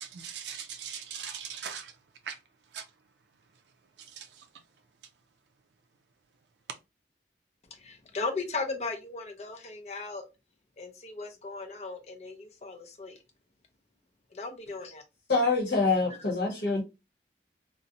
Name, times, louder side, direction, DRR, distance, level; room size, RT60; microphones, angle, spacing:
voice 1, 0.0-1.9 2.3-2.4 2.7-2.9 4.0-4.5, right 8 dB, 75° right, 0.3 m, -40 dB
voice 2, 7.7-10.2 10.8-13.2 14.3-15.0, left 3 dB, 35° left, 0.5 m, -37 dB
voice 3, 15.3-16.8, left 3 dB, 70° left, 0.9 m, -25 dB
2.6 x 2.0 x 2.7 m
head